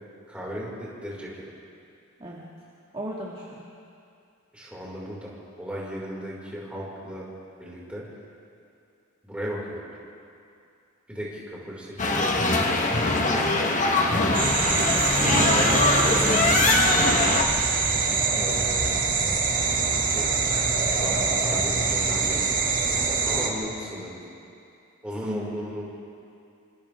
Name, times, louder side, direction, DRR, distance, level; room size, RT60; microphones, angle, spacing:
voice 1, 0.3-1.4 4.5-5.3 5.6-7.2 7.6-8.0 9.2-9.9 11.1-12.7 13.0-14.0 15.5-17.1 18.4-18.9 19.9-20.3 20.9-22.4 23.2-24.2 25.0-25.8, equal, 5° right, -6 dB, 5.6 m, -36 dB
voice 2, 2.9-3.6 14.9-15.8 16.1-16.9 18.4-18.7 25.2-25.5, right 1 dB, 25° right, -5 dB, 2.0 m, -35 dB
sound 1, 12.0-17.4, left 2 dB, 35° left, 1.5 m, -22 dB
sound 2, 14.3-23.5, right 4 dB, 40° right, 2.4 m, -24 dB
27.5 x 26.0 x 3.7 m, 2.5 s
head